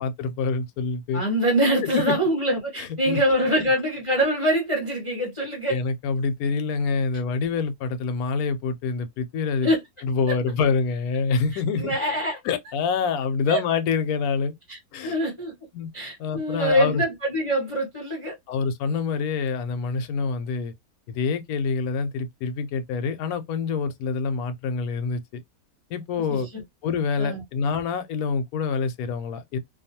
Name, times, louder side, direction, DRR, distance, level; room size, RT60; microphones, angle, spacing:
voice 1, 0.0-1.2 1.8-2.1 2.8-3.2 5.7-9.7 10.0-11.9 12.4-14.5 14.9-15.2 15.7-15.9 16.2-17.0 18.5-20.7 21.1-25.2 25.9-26.5 26.8-29.6, left 5 dB, 75° left, 1.0 m, -26 dB
voice 2, 1.1-5.7 9.6-9.8 11.8-12.4 13.5-13.6 14.7-15.5 15.9-18.3 26.3-26.4 27.2-27.4, equal, 30° left, 0.6 m, -24 dB
2.5 x 2.3 x 2.7 m
omnidirectional pair, 1.6 m